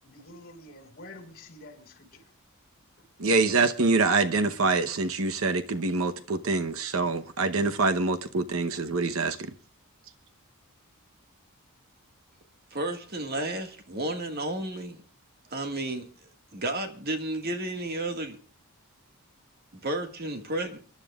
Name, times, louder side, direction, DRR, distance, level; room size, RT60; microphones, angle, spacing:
voice 1, 0.0-2.3 3.0-3.1, left 1 dB, 45° left, 5.2 m, -48 dB
voice 2, 3.2-9.5, right 3 dB, 65° right, 1.0 m, -25 dB
voice 3, 12.7-15.0 15.5-16.1 16.5-18.4 19.8-20.8, right 1 dB, 45° right, 1.8 m, -32 dB
29.5 x 11.5 x 2.4 m
head